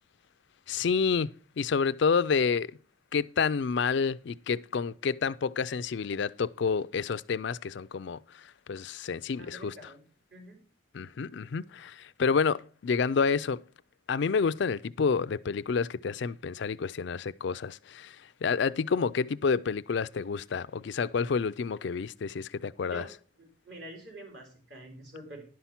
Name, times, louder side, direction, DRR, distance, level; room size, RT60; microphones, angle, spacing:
voice 1, 0.7-2.7 3.1-9.7 10.9-13.6 14.1-23.0, left 5 dB, 60° left, 0.4 m, -29 dB
voice 2, 9.4-10.0 10.3-10.6 22.9-25.5, right 1 dB, 55° right, 3.9 m, -47 dB
11.0 x 5.7 x 5.9 m
head